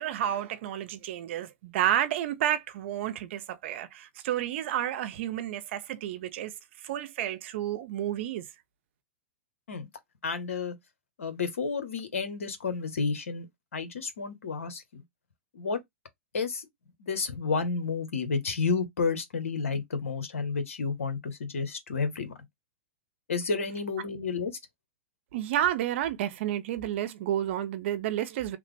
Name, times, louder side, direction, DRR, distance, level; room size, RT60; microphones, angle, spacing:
voice 1, 0.0-6.5 6.8-8.5 25.3-28.6, right 11 dB, 60° right, 0.6 m, -30 dB
voice 2, 10.2-10.8 11.2-13.5 13.7-15.0 15.5-15.8 16.3-16.7 17.0-22.3 23.3-24.5, left 4 dB, 80° left, 1.0 m, -31 dB
3.2 x 2.1 x 3.2 m
hypercardioid pair, 110°, 7 cm